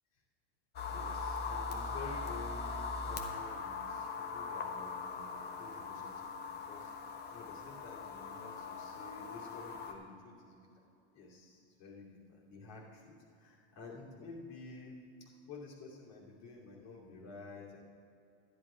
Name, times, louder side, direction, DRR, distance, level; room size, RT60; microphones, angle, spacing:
sound 1, 0.8-9.9, left 4 dB, 30° left, 1.2 m, -41 dB
voice 1, 0.9-6.9 7.3-10.6 11.1-17.8, left 3 dB, 50° left, -3 dB, 2.6 m, -51 dB
11.5 x 10.5 x 4.9 m, 2.5 s
supercardioid pair, 115°, 34 cm